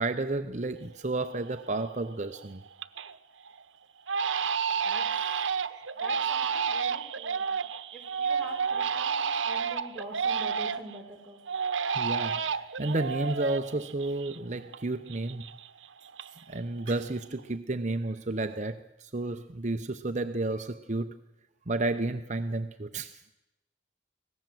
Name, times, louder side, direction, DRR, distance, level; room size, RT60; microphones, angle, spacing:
voice 1, 0.0-2.6 5.5-5.6 11.9-15.5 16.5-21.2 21.7-23.2, right 2 dB, 40° right, 0.7 m, -32 dB
Crying sobbing, 0.9-1.0 1.5-1.9 2.3-3.2 3.5-3.6 4.1-11.0 11.5-14.8 15.1-16.6 16.8-17.4, right 6 dB, 85° right, 0.9 m, -31 dB
voice 2, 4.8-5.3 6.0-11.4, right 1 dB, 5° left, 5.2 m, -45 dB
25.0 x 18.0 x 7.8 m
head